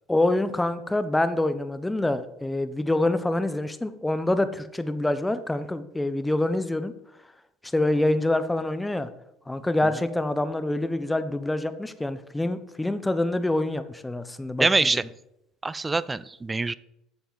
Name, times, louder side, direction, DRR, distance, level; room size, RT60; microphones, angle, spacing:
voice 1, 0.1-6.9 7.6-9.1 9.5-14.9, left 2 dB, 10° left, 12 dB, 0.7 m, -26 dB
voice 2, 14.6-15.0 15.6-16.7, right 3 dB, 20° right, 19 dB, 0.4 m, -24 dB
8.6 x 6.8 x 4.0 m, 0.84 s
supercardioid pair, 90°, 0 cm